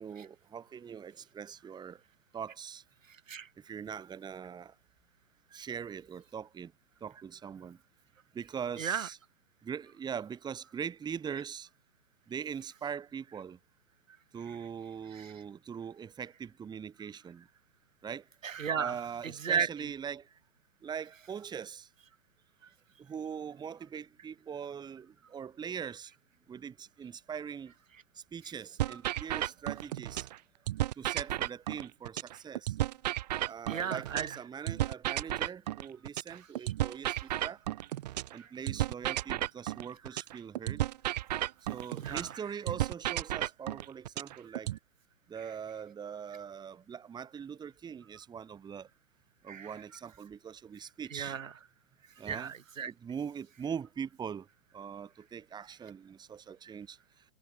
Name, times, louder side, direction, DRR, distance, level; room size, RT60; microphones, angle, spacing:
voice 1, 0.0-2.0 2.3-2.8 3.6-4.7 5.5-6.7 7.0-7.8 8.3-9.2 9.6-11.7 12.3-13.6 14.3-17.5 18.0-18.3 18.8-20.4 20.8-21.9 23.0-26.1 26.5-27.7 28.1-30.3 31.0-32.8 33.5-37.6 38.3-40.8 41.7-44.8 45.3-48.9 49.4-51.4 52.2-52.5 52.8-54.5 54.7-57.0, right 7 dB, 10° right, 2.4 m, -42 dB
voice 2, 3.1-3.5 8.8-9.1 15.1-15.3 18.4-19.7 28.9-29.0 33.7-34.4 38.4-38.5 42.0-42.3 49.5-49.8 51.1-51.5 52.2-52.9, right 7 dB, 60° right, 2.8 m, -34 dB
sound 1, 28.8-30.4 30.7-34.4 34.7-38.4 38.7-42.4 42.7-44.8, right 14 dB, 30° right, 0.8 m, -33 dB
figure-of-eight pair, 125°, 43 cm